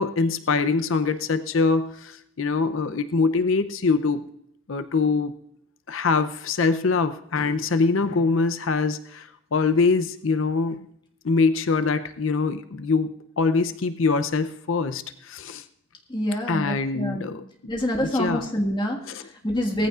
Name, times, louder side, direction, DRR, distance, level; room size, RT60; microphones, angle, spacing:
voice 1, 0.0-4.3 4.7-5.3 5.9-10.9 11.2-15.6 16.5-17.4 18.0-18.5 19.1-19.3, left 4 dB, 80° left, 10 dB, 0.6 m, -24 dB
voice 2, 16.1-17.3 17.7-19.1 19.4-19.9, equal, 20° left, 0 dB, 1.7 m, -26 dB
18.5 x 14.5 x 2.5 m, 0.74 s
head